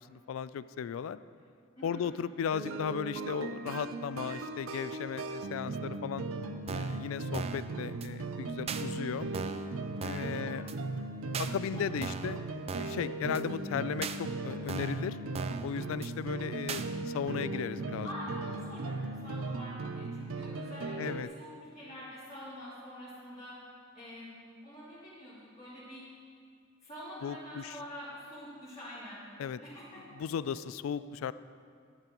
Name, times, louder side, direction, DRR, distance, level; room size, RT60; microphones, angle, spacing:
voice 1, 0.1-1.2 1.8-6.3 6.7-9.3 10.0-10.6 11.4-12.4 12.8-15.2 15.6-18.1 21.0-21.3 27.2-27.7 29.4-29.6 30.2-31.3, left 7 dB, 80° left, 15 dB, 0.3 m, -36 dB
sound 1, 2.5-21.2, right 3 dB, 85° right, 0.5 m, -38 dB
sound 2, 6.7-7.0 7.3-7.7 8.0-8.1 8.7-8.8 9.3-9.7 10.0-10.3 10.7-10.8 11.3-11.5 12.0-12.3 12.7-13.0 13.3-13.4 14.0-14.2 14.7-15.0 15.3-15.7 16.0-16.1 16.7-16.9, right 5 dB, 30° right, 0.4 m, -38 dB
voice 2, 18.0-23.5 23.9-26.0 26.8-29.2 29.6-30.0, equal, 30° left, -13 dB, 2.8 m, -46 dB
11.0 x 11.0 x 3.0 m, 2.3 s
head